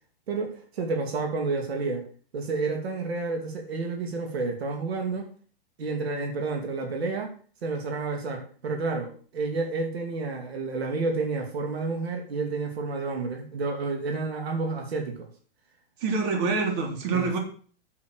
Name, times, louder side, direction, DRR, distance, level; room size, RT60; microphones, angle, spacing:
voice 1, 0.3-2.0 2.3-5.3 5.8-7.3 7.6-15.3 17.1-17.3, right 3 dB, 85° right, 3 dB, 2.9 m, -30 dB
voice 2, 16.0-17.4, right 4 dB, 45° right, 2 dB, 3.6 m, -26 dB
9.0 x 7.4 x 6.4 m, 0.43 s
hypercardioid pair, 145°, 30 cm